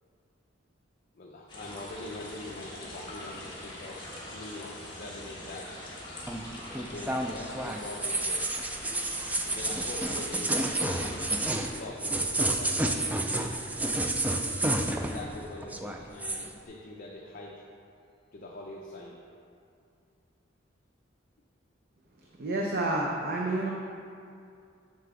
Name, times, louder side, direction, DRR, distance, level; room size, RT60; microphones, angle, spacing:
voice 1, 1.1-4.0 4.3-5.8 6.7-8.4 9.4-11.3 11.7-13.6 14.8-17.6 18.3-19.2, left 2 dB, 45° left, -2 dB, 0.6 m, -43 dB
sound 1, 1.5-11.6, left 1 dB, 25° left, 1.4 m, -43 dB
sound 2, 6.3-15.4 15.6-16.5, right 1 dB, 10° right, 0.3 m, -30 dB
voice 2, 22.4-23.7, right 2 dB, 50° right, -1 dB, 0.6 m, -29 dB
6.9 x 6.6 x 3.7 m, 2.4 s
head